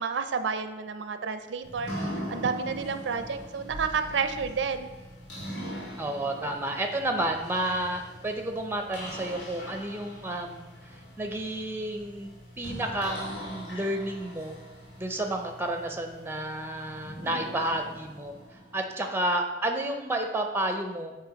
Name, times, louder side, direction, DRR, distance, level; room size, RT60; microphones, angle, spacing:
voice 1, 0.0-4.9 6.4-6.5, right 5 dB, 85° right, 9 dB, 0.4 m, -30 dB
sound 1, 1.6-19.5, equal, 90° left, 2.0 m, -41 dB
voice 2, 6.0-14.5 15.0-18.3 18.7-21.2, right 1 dB, 15° right, 5 dB, 0.5 m, -31 dB
7.5 x 3.0 x 5.1 m, 1.1 s
head